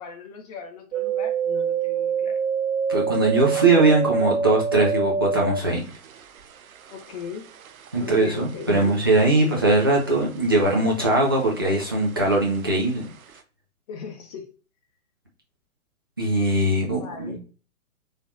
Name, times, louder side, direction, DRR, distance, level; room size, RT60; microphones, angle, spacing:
voice 1, 0.0-2.4 6.9-7.5 8.0-9.0 9.4-9.5 13.9-14.5 16.9-17.4, left 6 dB, 25° left, 3 dB, 0.8 m, -38 dB
sound 1, 0.9-10.3 10.6-11.5 11.8-12.7 13.1-13.2, right 6 dB, 70° right, 0.5 m, -27 dB
voice 2, 2.9-5.8 7.9-13.1 16.2-17.4, right 2 dB, 15° right, -4 dB, 0.4 m, -21 dB
4.1 x 3.3 x 2.4 m, 0.38 s
figure-of-eight pair, 120°, 44 cm